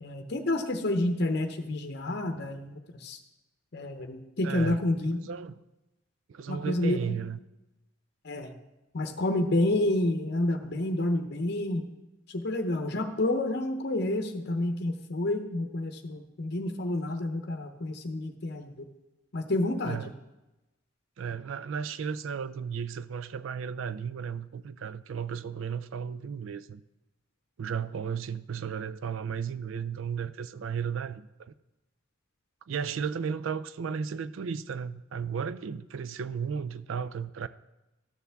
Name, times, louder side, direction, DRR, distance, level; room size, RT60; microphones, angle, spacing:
voice 1, 0.0-3.2 3.7-5.2 6.5-7.1 8.2-8.5 8.9-11.8 12.3-18.7 19.3-20.1, left 1 dB, 55° left, 0.7 m, -29 dB
voice 2, 4.4-5.6 6.3-7.4 19.8-20.1 21.2-26.8 27.6-31.5 32.7-37.5, right 6 dB, 75° right, 0.4 m, -34 dB
13.0 x 6.9 x 3.5 m
head